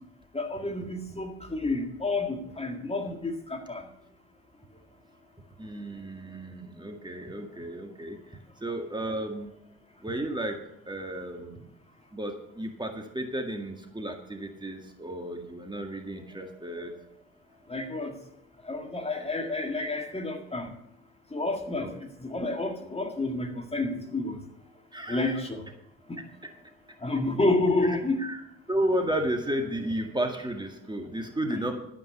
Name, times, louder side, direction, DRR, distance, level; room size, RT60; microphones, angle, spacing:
voice 1, 0.3-3.8 17.7-18.1 18.7-20.7 21.3-22.0 22.2-24.4 25.1-25.6 26.1-26.2 27.0-28.2 31.5-31.6, left 2 dB, 20° left, 4 dB, 1.8 m, -29 dB
voice 2, 5.6-8.2 8.6-9.5 10.0-10.6 10.9-11.7 12.1-17.1 21.8-21.9 24.9-25.4 27.8-28.4 28.7-31.8, right 1 dB, 15° right, 3 dB, 1.8 m, -33 dB
12.5 x 5.4 x 8.2 m, 0.78 s
cardioid pair, 75°, 32 cm